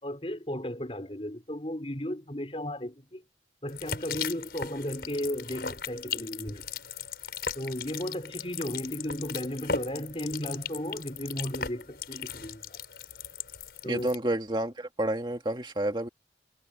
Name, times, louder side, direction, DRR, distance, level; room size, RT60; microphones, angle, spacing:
voice 1, 0.0-3.2 3.6-6.7 7.5-12.8 13.8-14.1, equal, 30° left, 4.7 m, -35 dB
sound 1, 3.7-14.2, left 6 dB, 65° left, 5.2 m, -38 dB
voice 2, 13.8-16.1, right 1 dB, 25° right, 2.3 m, -29 dB
head